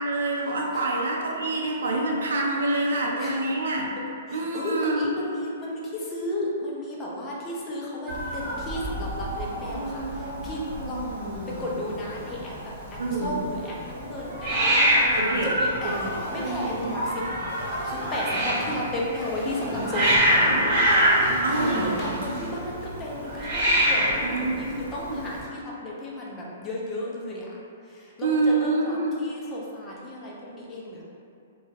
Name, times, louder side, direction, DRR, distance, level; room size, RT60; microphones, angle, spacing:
voice 1, 0.0-3.9 4.3-5.1 13.0-13.4 15.2-15.5 15.8-15.9 21.4-22.2 24.2-25.2 28.2-29.1, right 2 dB, 85° right, -1 dB, 0.4 m, -26 dB
voice 2, 4.3-11.1 11.5-20.7 21.6-27.6 27.8-31.0, left 1 dB, 15° left, -4 dB, 0.4 m, -34 dB
Hiss, 8.1-25.4, equal, 30° right, 0.8 m, -26 dB
sound 1, 15.8-22.5, right 1 dB, 50° right, 1.1 m, -43 dB
2.3 x 2.1 x 3.3 m, 2.5 s
hypercardioid pair, 160°, 0 cm